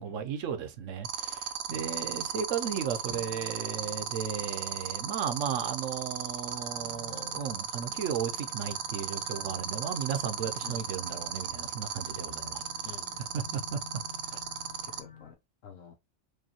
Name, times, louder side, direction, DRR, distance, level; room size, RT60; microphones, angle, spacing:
voice 1, 0.0-12.6 13.3-14.0, right 7 dB, 85° right, 1.0 m, -35 dB
sound 1, 1.0-15.0, right 9 dB, 60° right, 0.7 m, -35 dB
Bowed string instrument, 3.1-6.4, left 2 dB, 35° left, 1.2 m, -51 dB
sound 2, 6.4-15.3, left 7 dB, 55° left, 1.0 m, -50 dB
voice 2, 12.8-13.3 14.2-14.3 14.8-15.3 15.6-16.0, left 7 dB, 85° left, 1.2 m, -50 dB
4.7 x 2.7 x 2.8 m
omnidirectional pair, 1.3 m